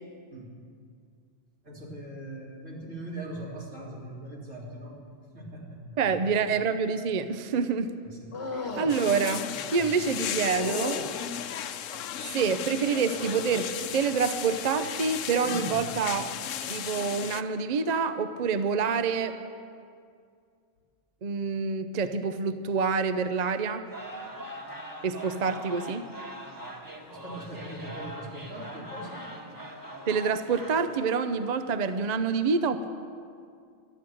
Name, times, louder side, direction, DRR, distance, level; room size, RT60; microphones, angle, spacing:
voice 1, 1.6-5.0 5.3-6.5 8.0-8.3 8.7-8.9 9.5-9.9 15.4-15.8 27.0-29.3, right 1 dB, 80° right, -5 dB, 3.4 m, -41 dB
voice 2, 6.0-7.9 8.5-9.5 9.7-11.0 12.3-16.3 16.7-19.4 21.2-23.9 25.0-26.1 30.1-32.9, right 5 dB, 45° right, 10 dB, 0.6 m, -27 dB
sound 1, 8.3-8.9 10.4-11.1 11.9-12.7 13.2-13.6 14.0-14.4 16.0-16.2, left 3 dB, 60° left, 1.4 m, -36 dB
sound 2, 8.9-17.4, left 10 dB, 80° left, 1.0 m, -35 dB
sound 3, 23.9-31.0, equal, 15° right, 1.4 m, -42 dB
13.0 x 11.5 x 7.7 m, 2.3 s
omnidirectional pair, 1.3 m